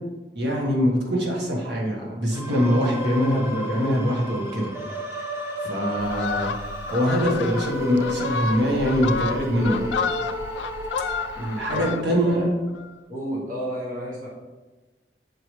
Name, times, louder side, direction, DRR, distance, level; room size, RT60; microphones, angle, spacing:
voice 1, 0.3-4.7 5.6-6.5 6.9-10.0 11.3-12.4, equal, 75° right, -2 dB, 1.4 m, -23 dB
sound 1, 2.3-11.9, left 1 dB, 15° right, 0.9 m, -33 dB
Fowl, 6.0-12.3 12.7-12.9, left 5 dB, 80° left, 0.3 m, -31 dB
voice 2, 11.7-12.5 13.1-14.3, equal, 50° right, -4 dB, 1.1 m, -31 dB
6.7 x 4.8 x 3.2 m, 1.2 s
head